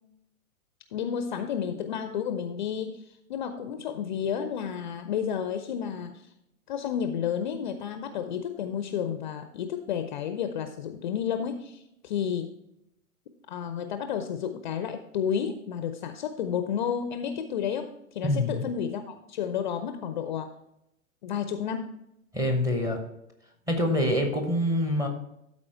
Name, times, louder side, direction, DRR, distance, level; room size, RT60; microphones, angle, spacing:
voice 1, 0.9-6.2 6.7-12.5 13.5-20.5 21.2-21.9, left 8 dB, 35° left, 9 dB, 0.5 m, -31 dB
voice 2, 18.2-18.7 22.3-23.0 23.7-25.1, left 1 dB, 10° right, 4 dB, 0.9 m, -25 dB
12.5 x 4.3 x 4.3 m, 0.82 s
figure-of-eight pair, 110°, 42 cm